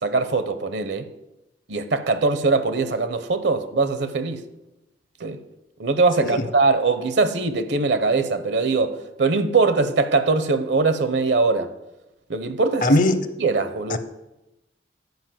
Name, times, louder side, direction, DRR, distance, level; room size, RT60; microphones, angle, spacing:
voice 1, 0.0-1.1 1.7-4.4 5.2-5.4 5.8-11.7 12.3-12.9 13.4-14.0, right 3 dB, 75° right, 0.8 m, -21 dB
voice 2, 12.8-13.2 13.9-14.0, left 1 dB, 50° left, 0.8 m, -19 dB
10.5 x 5.2 x 7.5 m
head